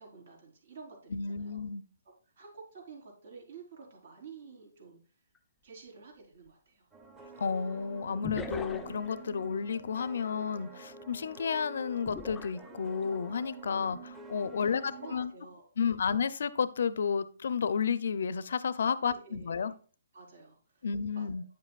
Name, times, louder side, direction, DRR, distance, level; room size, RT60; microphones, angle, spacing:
voice 1, 0.0-1.6 2.4-5.0 5.6-6.9 14.6-16.1 19.0-19.7 20.1-20.9 21.1-21.4, right 5 dB, 65° right, 4.3 m, -51 dB
voice 2, 1.1-1.8 7.4-15.3 15.8-19.7 20.8-21.4, left 6 dB, 70° left, 0.6 m, -32 dB
sound 1, 5.4-5.5 8.2-9.1 12.1-13.2 13.7-14.0, left 3 dB, 10° left, 0.6 m, -41 dB
sound 2, 6.9-15.3, right 2 dB, 15° right, 1.0 m, -48 dB
9.2 x 7.5 x 2.4 m
hypercardioid pair, 150°, 0 cm